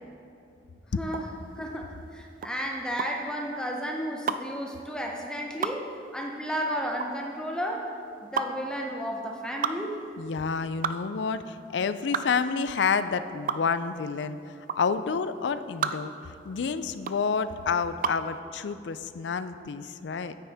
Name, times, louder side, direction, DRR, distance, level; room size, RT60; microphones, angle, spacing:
sound 1, 1.1-18.3, right 6 dB, 50° right, 0.3 m, -34 dB
voice 1, 1.6-7.9 8.2-10.0, equal, 5° left, 0 dB, 0.6 m, -33 dB
voice 2, 10.2-14.4 14.8-16.1 16.4-20.3, left 5 dB, 80° left, 12 dB, 0.4 m, -29 dB
9.6 x 9.3 x 3.5 m, 2.6 s
head